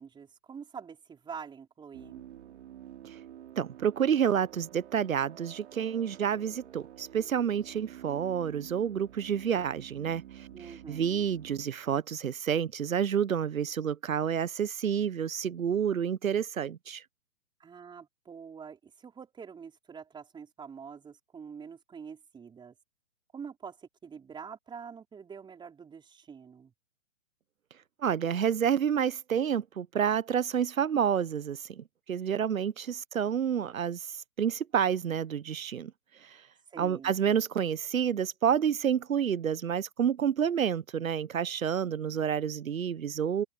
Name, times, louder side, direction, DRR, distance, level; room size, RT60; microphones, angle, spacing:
voice 1, 0.0-2.2 10.5-11.3 17.6-22.7 23.3-26.7 36.7-37.2, right 6 dB, 10° right, 4.6 m, -46 dB
sound 1, 1.9-11.6, right 11 dB, 55° right, 3.8 m, -49 dB
voice 2, 3.6-17.0 28.0-35.9 36.2-36.4 36.8-43.4, right 8 dB, 85° right, 0.9 m, -29 dB
open air
hypercardioid pair, 135°, 40 cm